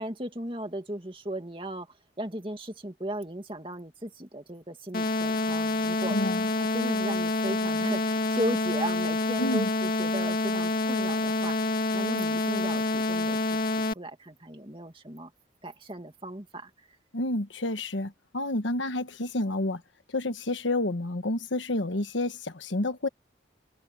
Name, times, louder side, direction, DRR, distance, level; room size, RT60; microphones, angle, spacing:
voice 1, 0.0-1.9 2.2-6.2 6.7-13.4 13.6-15.3 15.6-16.9, right 1 dB, 30° right, 2.3 m, -36 dB
sound 1, 4.9-13.9, left 2 dB, 50° left, 1.7 m, -27 dB
voice 2, 6.1-6.5 9.4-9.7 17.1-19.8 20.1-23.1, left 2 dB, 90° left, 1.3 m, -29 dB
head